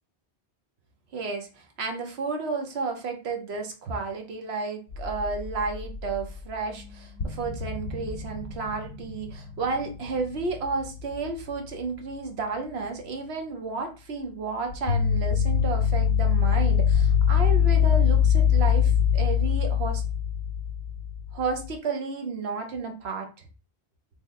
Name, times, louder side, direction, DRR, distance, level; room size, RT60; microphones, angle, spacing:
voice 1, 1.1-20.0 21.3-23.3, right 4 dB, 75° right, 4 dB, 1.0 m, -32 dB
sound 1, 4.9-6.4 6.7-6.8 7.2-11.6 14.7-21.7, left 8 dB, 70° left, 0.9 m, -24 dB
3.2 x 2.1 x 3.5 m, 0.33 s
omnidirectional pair, 1.1 m